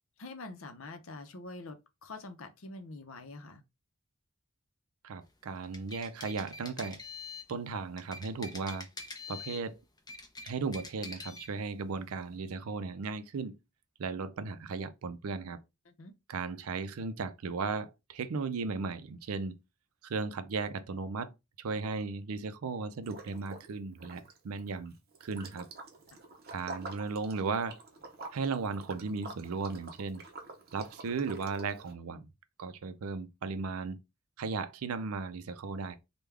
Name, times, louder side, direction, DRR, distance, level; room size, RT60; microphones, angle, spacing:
voice 1, 0.2-3.6 15.9-16.1 26.1-26.2, left 2 dB, 70° left, 0.6 m, -45 dB
voice 2, 5.0-7.0 7.5-8.9 9.3-9.8 10.4-13.5 14.0-15.6 16.3-19.6 20.0-24.9 25.2-25.7 26.5-27.8 28.3-30.2 30.7-32.3 32.6-34.0 34.4-36.0, right 4 dB, 85° right, 0.5 m, -36 dB
sound 1, 5.6-7.5 8.0-9.7 10.0-11.5, left 3 dB, 20° left, 0.6 m, -45 dB
Liquid, 23.0-23.7 24.0-31.9, right 3 dB, 45° right, 0.6 m, -48 dB
3.4 x 2.2 x 3.3 m
head